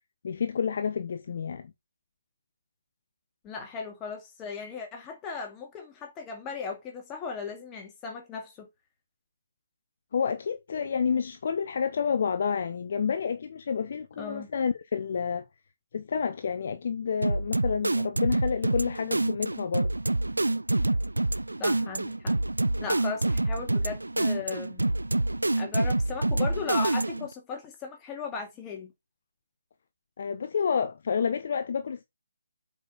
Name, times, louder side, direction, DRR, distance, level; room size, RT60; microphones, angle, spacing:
voice 1, 0.2-1.7 10.1-15.4 15.9-19.9 30.2-32.0, left 6 dB, 40° left, 0.9 m, -29 dB
voice 2, 3.4-8.7 14.2-14.5 21.6-22.4 22.8-24.9 25.6-28.9, left 5 dB, 15° left, 2.3 m, -36 dB
sound 1, 17.2-27.3, right 2 dB, 70° right, 0.5 m, -27 dB
8.1 x 5.2 x 4.1 m
figure-of-eight pair, 145°, 0 cm